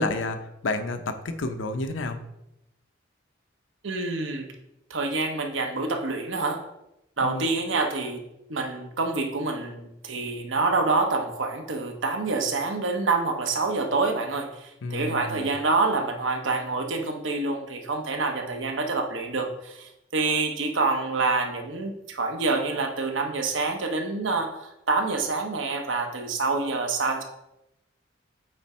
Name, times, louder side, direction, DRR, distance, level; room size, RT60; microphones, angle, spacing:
voice 1, 0.0-2.2 7.2-7.5 14.8-15.5, left 2 dB, 75° left, 8 dB, 0.7 m, -30 dB
voice 2, 3.8-4.5 4.9-6.6 7.2-8.2 8.5-27.2, right 3 dB, 80° right, 4 dB, 1.0 m, -27 dB
8.6 x 3.5 x 4.3 m, 0.88 s
head